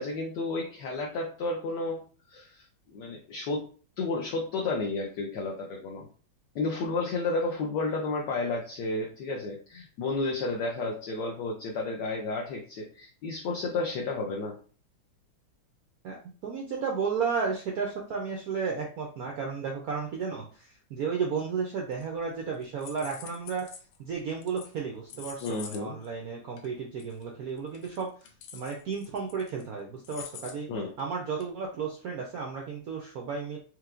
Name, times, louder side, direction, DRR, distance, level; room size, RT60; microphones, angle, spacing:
voice 1, 0.0-2.0 2.3-3.7 4.0-6.1 6.5-14.6 25.4-26.0 30.7-30.9, left 3 dB, 70° left, 0 dB, 1.1 m, -32 dB
voice 2, 16.4-23.7 24.0-28.1 28.5-30.7 31.0-33.6, right 5 dB, 85° right, 0 dB, 0.8 m, -33 dB
sound 1, 21.9-22.4 22.6-24.0 24.4-24.8 25.1-25.8 26.0-26.1 26.6-26.7 27.0-27.2 27.6-29.6 30.0-30.6 31.0-31.1 31.4-31.5, left 8 dB, 90° left, 1.5 m, -46 dB
4.6 x 3.0 x 2.5 m, 0.40 s
omnidirectional pair, 2.4 m